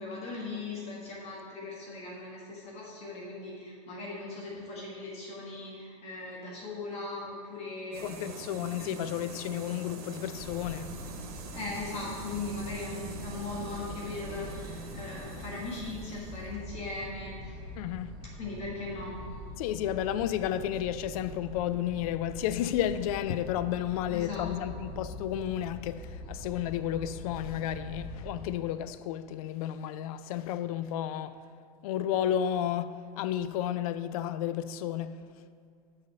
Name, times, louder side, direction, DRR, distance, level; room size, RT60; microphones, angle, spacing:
voice 1, 0.0-8.7 11.5-17.3 18.4-19.1 24.1-24.7, left 3 dB, 35° left, 1.4 m, -39 dB
sound 1, 7.9-17.5, right 3 dB, 80° right, 1.2 m, -44 dB
voice 2, 8.0-10.9 17.8-18.2 19.6-31.3 31.8-35.2, left 11 dB, 75° left, 0.4 m, -32 dB
sound 2, 10.3-28.4, left 1 dB, 5° left, 2.1 m, -44 dB
6.9 x 4.1 x 6.6 m
supercardioid pair, 145°, 19 cm